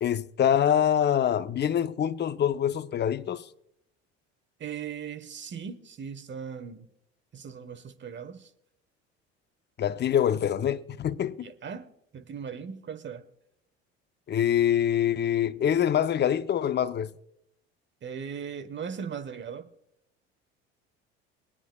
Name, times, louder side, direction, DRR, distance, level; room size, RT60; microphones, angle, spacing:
voice 1, 0.0-3.5 9.8-11.5 14.3-17.1, left 9 dB, 35° left, 0.6 m, -25 dB
voice 2, 4.6-6.9 7.3-8.5 11.4-13.3 18.0-19.7, right 7 dB, 35° right, 1.2 m, -38 dB
22.5 x 9.8 x 2.3 m
hypercardioid pair, 70°, 32 cm